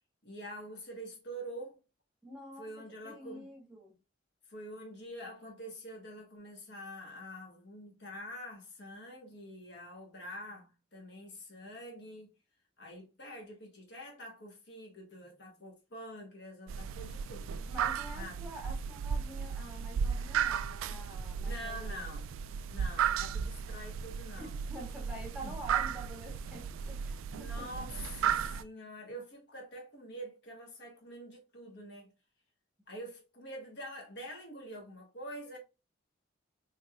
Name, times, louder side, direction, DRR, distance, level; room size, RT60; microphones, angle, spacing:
voice 1, 0.2-1.8 2.6-3.5 4.5-12.3 12.8-17.6 18.1-18.4 21.4-22.3 22.7-24.5 25.4-25.5 27.3-32.1 32.9-35.6, equal, 55° left, 1.2 m, -46 dB
voice 2, 2.2-4.0 17.7-22.1 24.4-27.9, right 1 dB, 5° right, 1.1 m, -47 dB
sound 1, 16.7-28.6, right 7 dB, 75° right, 0.3 m, -35 dB
4.0 x 3.2 x 2.2 m
head